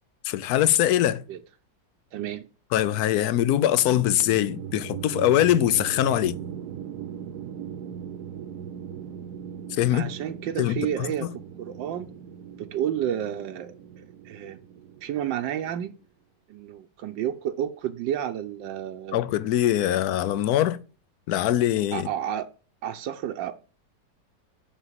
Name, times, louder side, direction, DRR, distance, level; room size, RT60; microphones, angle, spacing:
voice 1, 0.2-1.2 2.7-6.4 9.7-10.1 10.6-10.9 11.2-11.3 19.1-20.8 21.3-22.1, left 12 dB, 70° left, 1.1 m, -22 dB
voice 2, 2.1-2.5 9.9-11.3 11.6-12.1 12.6-13.7 14.2-14.6 15.0-15.9 16.5-19.3 21.9-22.5 22.8-23.6, right 10 dB, 85° right, 1.4 m, -30 dB
sound 1, 3.7-15.9, right 9 dB, 70° right, 1.2 m, -39 dB
6.9 x 6.5 x 7.4 m
omnidirectional pair, 1.9 m